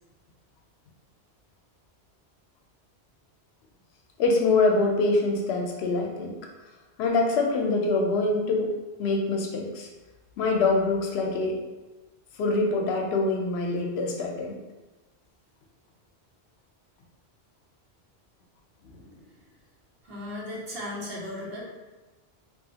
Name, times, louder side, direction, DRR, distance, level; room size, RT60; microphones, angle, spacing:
voice 1, 4.2-6.3 7.0-8.7 9.0-9.9 10.4-11.6 12.4-14.6 18.8-19.1, left 3 dB, 85° left, 1 dB, 0.8 m, -25 dB
voice 2, 20.0-21.6, left 1 dB, 70° right, -3 dB, 1.0 m, -36 dB
3.1 x 2.4 x 2.7 m, 1.2 s
omnidirectional pair, 1.1 m